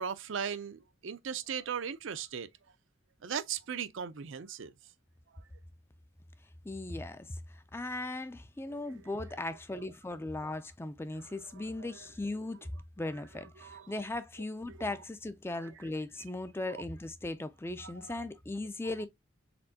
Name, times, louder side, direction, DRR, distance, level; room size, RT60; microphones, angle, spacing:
voice 1, 0.0-2.5 3.2-4.7 8.7-8.8 11.1-11.3 11.8-12.0 13.6-13.9 14.9-15.0 15.5-15.7 16.6-16.8 17.8-18.1, right 7 dB, 70° right, 0.5 m, -38 dB
voice 2, 6.7-7.4 7.7-12.6 13.0-19.1, left 2 dB, 10° left, 0.3 m, -38 dB
4.3 x 3.7 x 2.7 m
head